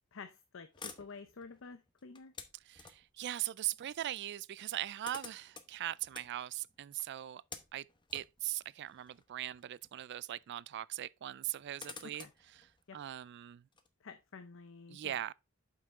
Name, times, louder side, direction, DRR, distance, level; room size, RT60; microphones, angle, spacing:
voice 1, 0.1-2.3 12.0-12.3 12.9-13.0 14.0-15.2, left 4 dB, 60° left, 0.6 m, -50 dB
sound 1, 0.7-3.2 4.3-4.4 4.6-10.1 10.4-10.5 11.3-13.9, left 5 dB, 20° left, 0.8 m, -52 dB
voice 2, 2.7-7.4 7.7-7.9 8.1-12.3 12.6-13.6 14.9-15.3, right 13 dB, 50° right, 0.3 m, -40 dB
7.5 x 5.7 x 3.6 m
head